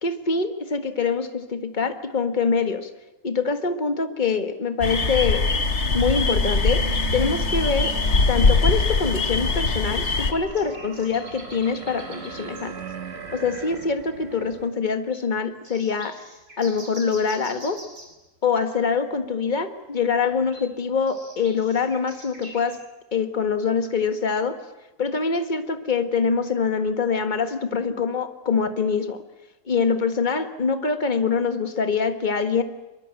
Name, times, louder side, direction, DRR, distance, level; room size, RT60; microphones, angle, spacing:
voice 1, 0.0-2.9 3.2-5.5 5.9-6.8 7.1-8.0 8.3-12.8 13.3-16.2 16.6-17.8 18.4-22.8 23.1-24.6 25.0-29.2 29.7-32.6, left 5 dB, 30° left, 8 dB, 1.7 m, -24 dB
sound 1, 4.8-10.3, left 3 dB, 45° left, 2.0 m, -22 dB
sound 2, 5.4-14.7, right 7 dB, 40° right, 2.0 m, -39 dB
sound 3, 9.9-12.7 13.3-13.4 13.7-13.8 14.2-14.5 15.1-15.2 15.6-18.2 20.3-22.8, right 1 dB, 75° right, 5.4 m, -45 dB
24.0 x 23.0 x 8.9 m, 1.0 s
omnidirectional pair, 1.7 m